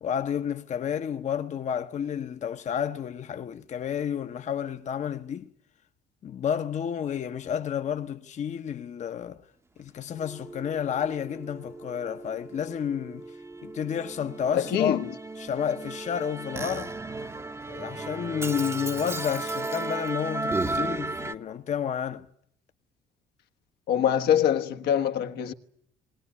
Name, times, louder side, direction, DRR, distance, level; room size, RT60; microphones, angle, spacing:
voice 1, 0.0-5.5 6.2-9.4 9.8-13.2 13.6-15.0 15.4-16.9 17.7-22.3, left 8 dB, 45° left, 0.9 m, -31 dB
Musical instrument, 10.1-21.3, right 2 dB, 15° right, 0.8 m, -35 dB
voice 2, 14.5-15.1 23.9-25.5, left 9 dB, 80° left, 1.4 m, -24 dB
21.0 x 18.5 x 9.7 m
cardioid pair, 110°, 17 cm